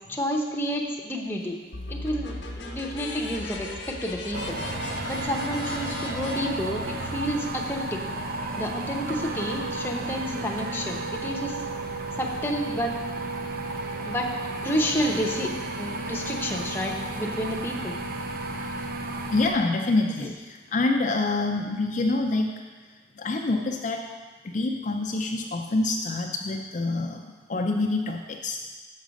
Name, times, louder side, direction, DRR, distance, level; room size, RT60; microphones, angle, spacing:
voice 1, 0.1-1.6 1.9-4.6 5.1-8.0 8.6-11.5 12.1-13.0 13.9-14.3 14.6-18.0 20.2-20.3, equal, 15° left, 0 dB, 0.8 m, -30 dB
sound 1, 1.7-7.3, left 2 dB, 80° left, 1.0 m, -37 dB
sound 2, 4.3-19.5, right 2 dB, 55° right, 0.6 m, -33 dB
voice 2, 19.3-22.5 23.2-24.1 24.4-28.6, left 2 dB, 45° left, 2 dB, 0.5 m, -26 dB
6.6 x 6.2 x 5.1 m, 1.3 s
head